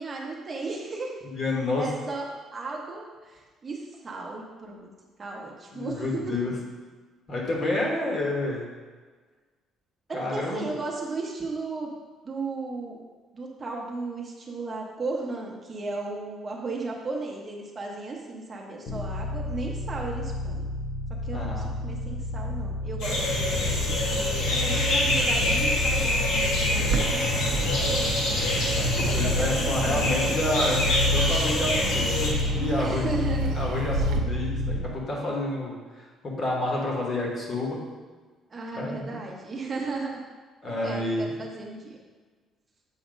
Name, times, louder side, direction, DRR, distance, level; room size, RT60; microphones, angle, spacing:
voice 1, 0.0-1.1 1.8-4.9 5.2-6.4 10.1-11.9 12.2-13.0 13.3-20.7 21.2-28.2 29.1-30.2 32.8-33.6 34.2-34.3 38.5-40.2 40.8-42.0, right 3 dB, 20° right, -2 dB, 0.9 m, -35 dB
voice 2, 1.2-1.9 5.7-6.5 7.3-8.7 10.1-10.7 21.3-21.7 28.8-33.1 33.5-37.8 38.7-39.2 40.6-41.3, left 2 dB, 30° left, -2 dB, 1.2 m, -29 dB
sound 1, 18.9-35.0, left 2 dB, 55° left, 0.7 m, -30 dB
sound 2, 23.0-32.3, left 1 dB, 70° left, 1.3 m, -26 dB
Bird, 26.7-34.2, right 4 dB, 70° right, 0.5 m, -34 dB
7.2 x 2.8 x 5.1 m, 1.4 s
cardioid pair, 175°, 0 cm